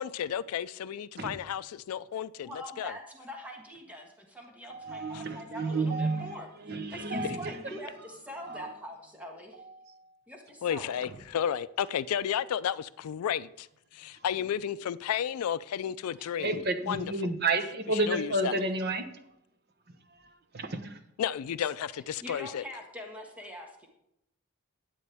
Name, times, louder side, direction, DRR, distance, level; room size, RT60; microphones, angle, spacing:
voice 1, 0.0-2.5 2.8-2.9 5.1-5.2 10.6-13.7 13.9-16.6 16.9-17.3 17.9-18.5 21.2-22.6, left 9 dB, 85° left, 0.3 m, -32 dB
voice 2, 2.4-6.5 6.9-9.6 10.3-11.0 16.2-16.3 22.2-23.9, equal, 5° right, 1.6 m, -44 dB
voice 3, 4.7-6.4 6.6-7.6 8.4-8.7 9.6-10.1 16.4-19.1 20.1-21.0, right 2 dB, 45° right, 1.0 m, -31 dB
12.0 x 8.5 x 3.5 m
head